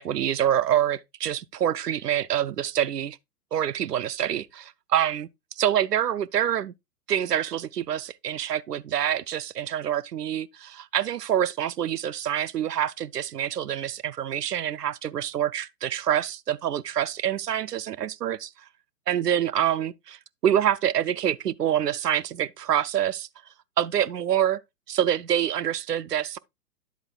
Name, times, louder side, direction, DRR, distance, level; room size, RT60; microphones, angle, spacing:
voice 1, 0.0-3.2 3.5-5.3 5.6-6.7 7.1-18.5 19.1-23.3 23.8-24.6 24.9-26.4, right 10 dB, 75° right, 0.6 m, -26 dB
10.5 x 7.8 x 2.3 m
figure-of-eight pair, 115°, 48 cm